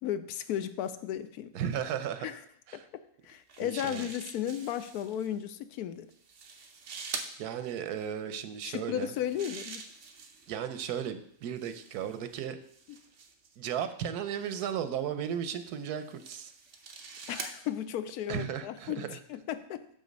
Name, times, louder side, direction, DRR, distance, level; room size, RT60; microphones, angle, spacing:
voice 1, 0.0-1.5 2.2-2.4 2.7-2.8 3.2-6.1 8.6-9.9 12.9-13.0 17.3-19.8, left 10 dB, 80° left, 12 dB, 1.1 m, -35 dB
voice 2, 1.5-2.3 2.7-2.9 3.6-4.1 7.4-9.1 10.5-12.6 13.6-16.5 18.3-19.2, right 9 dB, 85° right, 10 dB, 1.2 m, -35 dB
sound 1, 3.3-5.3 6.1-7.3 8.9-10.6 11.4-13.6 14.4-14.8 15.5-17.6, right 5 dB, 55° right, 1.1 m, -45 dB
7.2 x 6.2 x 5.2 m, 0.69 s
omnidirectional pair, 1.6 m